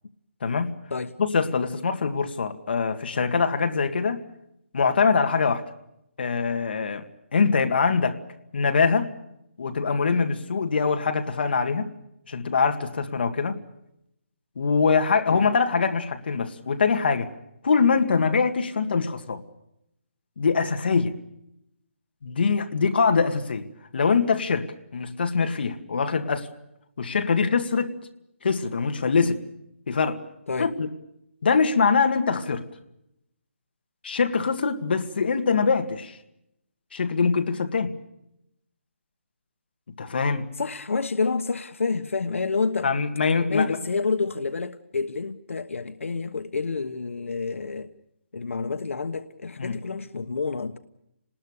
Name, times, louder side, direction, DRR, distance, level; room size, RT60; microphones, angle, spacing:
voice 1, 0.4-0.8 1.2-4.2 4.7-5.6 6.2-7.0 7.3-8.2 8.5-9.1 9.6-11.9 12.3-13.6 14.6-17.3 17.6-19.4 20.4-21.2 22.2-23.6 23.9-24.7 24.9-26.5 27.0-27.9 28.4-29.4 29.9-30.2 30.6-30.9 31.4-32.6 34.0-36.1 36.9-38.0 40.0-40.5 42.8-43.8 49.6-49.8, left 5 dB, 50° left, 2.1 m, -23 dB
voice 2, 40.5-42.9 43.5-47.9 48.3-50.8, left 4 dB, 85° left, 1.3 m, -28 dB
29.5 x 20.0 x 6.6 m
hypercardioid pair, 175°, 7 cm